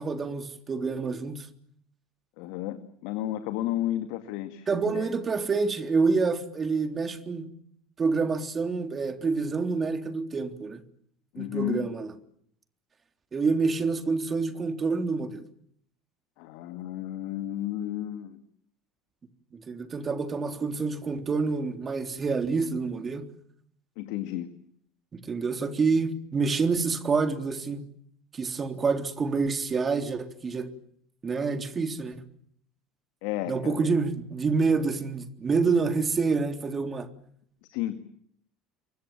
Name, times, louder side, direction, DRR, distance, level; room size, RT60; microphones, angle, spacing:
voice 1, 0.0-1.5 4.7-7.5 8.0-10.8 11.4-12.1 13.3-15.4 19.5-23.3 25.1-27.8 28.3-30.7 31.2-32.2 33.5-37.1, right 4 dB, 30° right, 3.5 m, -27 dB
voice 2, 2.4-5.1 11.3-11.8 16.4-18.4 24.0-24.5 33.2-33.9 37.7-38.0, left 13 dB, 65° left, 2.1 m, -32 dB
29.0 x 24.0 x 7.4 m
hypercardioid pair, 70°, 0 cm